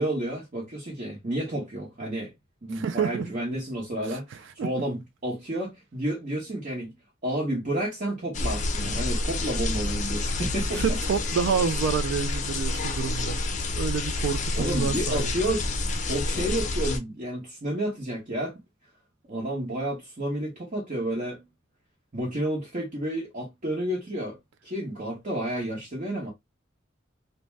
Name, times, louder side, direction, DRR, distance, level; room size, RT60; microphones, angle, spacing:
voice 1, 0.0-2.3 2.6-6.9 7.2-11.0 14.6-15.7 16.1-18.6 19.3-21.4 22.1-24.4 24.6-26.3, right 1 dB, 40° right, 0.9 m, -30 dB
voice 2, 2.7-3.3 4.1-4.2 4.6-4.7 10.8-13.4 13.8-15.3, right 6 dB, 65° right, 0.3 m, -28 dB
sound 1, 8.3-17.0, left 2 dB, 35° left, 0.5 m, -28 dB
2.5 x 2.1 x 3.2 m
head